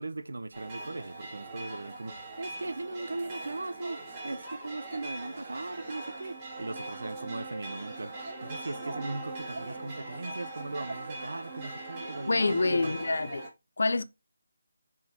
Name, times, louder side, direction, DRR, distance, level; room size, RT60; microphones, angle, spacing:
voice 1, 0.0-12.9, right 2 dB, 90° right, 0.7 m, -38 dB
sound 1, 0.5-13.5, right 2 dB, 20° right, 2.2 m, -41 dB
voice 2, 12.3-13.4 13.8-14.0, left 3 dB, 65° left, 0.6 m, -26 dB
6.0 x 4.6 x 4.3 m
figure-of-eight pair, 175°, 0 cm